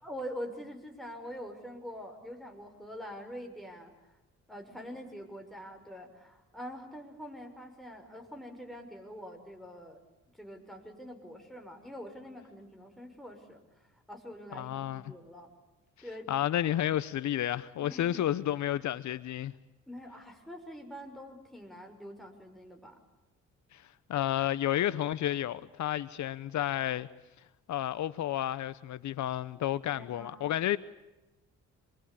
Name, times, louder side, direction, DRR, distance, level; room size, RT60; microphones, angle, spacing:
voice 1, 0.0-4.2 4.5-10.0 10.3-15.5 16.0-16.3 17.8-18.4 19.9-23.0 29.9-30.6, equal, ahead, 6.2 m, -45 dB
voice 2, 14.5-15.0 16.3-19.5 23.7-27.1 27.7-30.8, left 12 dB, 70° left, 0.9 m, -31 dB
26.5 x 23.0 x 8.6 m
cardioid pair, 90°, 30 cm